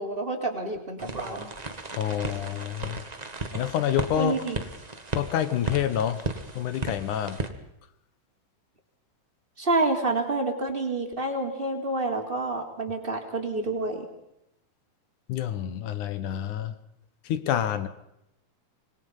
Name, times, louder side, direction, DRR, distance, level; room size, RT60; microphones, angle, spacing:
voice 1, 0.0-1.5 4.2-4.6 9.6-14.1, right 2 dB, 15° right, 2 dB, 3.2 m, -28 dB
sound 1, 1.0-7.5, right 2 dB, 50° right, 0.4 m, -35 dB
voice 2, 1.9-3.0 3.5-4.4 5.1-6.3 6.6-7.4 15.3-16.8 17.3-17.9, left 10 dB, 70° left, 12 dB, 2.6 m, -28 dB
26.0 x 21.5 x 5.5 m, 0.82 s
omnidirectional pair, 3.8 m